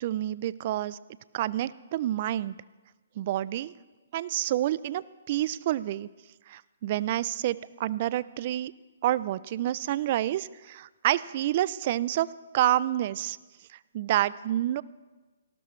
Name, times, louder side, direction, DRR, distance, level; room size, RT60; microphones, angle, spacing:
voice 1, 0.0-1.0 1.3-2.5 3.2-3.7 4.1-6.1 6.5-8.7 9.0-12.3 12.5-13.4 13.9-14.8, right 13 dB, 40° right, 19 dB, 0.4 m, -28 dB
18.5 x 17.0 x 3.2 m, 1.2 s
hypercardioid pair, 150°, 0 cm